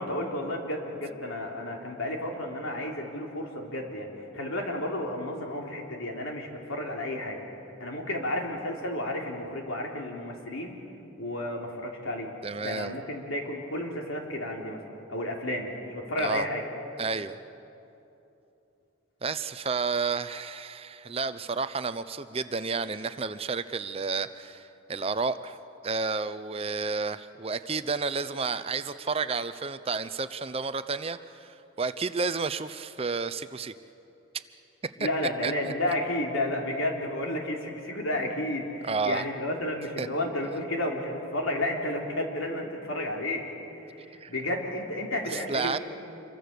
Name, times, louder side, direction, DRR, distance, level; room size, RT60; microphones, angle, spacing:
voice 1, 0.0-7.4 7.8-10.7 11.2-12.3 12.6-14.8 15.1-16.6 35.0-43.5 44.3-45.8, left 1 dB, 85° left, 0 dB, 3.5 m, -32 dB
voice 2, 12.4-13.0 16.2-16.5 17.0-17.4 19.2-25.6 25.8-33.7 35.4-35.7 38.9-39.2 40.0-40.1 44.2-44.3 45.2-45.8, right 4 dB, 30° right, 12 dB, 0.6 m, -31 dB
27.5 x 23.0 x 6.8 m, 2.9 s
head